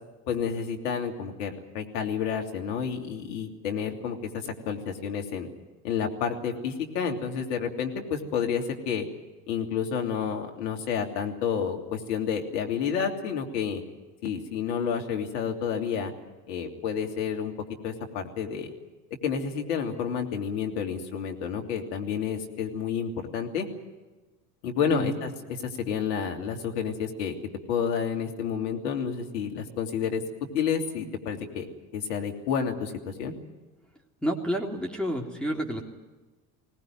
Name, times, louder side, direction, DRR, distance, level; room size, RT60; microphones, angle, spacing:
voice 1, 0.3-5.5 5.8-9.1 9.5-13.8 14.2-16.1 16.5-17.5 17.8-18.7 19.2-23.7 24.6-25.3 25.6-27.4 27.7-31.7 31.9-33.3, left 7 dB, 70° left, 3 dB, 3.0 m, -30 dB
voice 2, 34.2-35.8, equal, ahead, -2 dB, 3.4 m, -29 dB
21.0 x 18.5 x 9.4 m, 1.2 s
hypercardioid pair, 70°, 48 cm